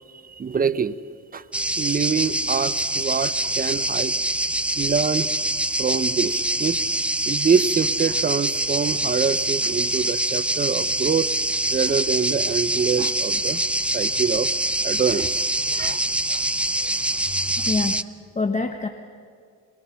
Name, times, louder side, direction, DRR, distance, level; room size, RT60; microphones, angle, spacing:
voice 1, 0.3-1.0 1.3-1.4 1.8-4.1 4.8-5.3 5.8-6.8 7.3-11.3 11.7-13.6 13.9-14.5 14.8-15.4 15.7-16.4 17.6-17.7, right 6 dB, 30° right, 14 dB, 0.7 m, -25 dB
sound 1, 1.5-18.0, right 1 dB, 5° right, 0.4 m, -24 dB
voice 2, 16.8-17.2 17.7-17.9 18.4-18.9, left 3 dB, 25° left, 6 dB, 1.1 m, -26 dB
24.5 x 20.0 x 5.8 m, 2.3 s
cardioid pair, 90°, 30 cm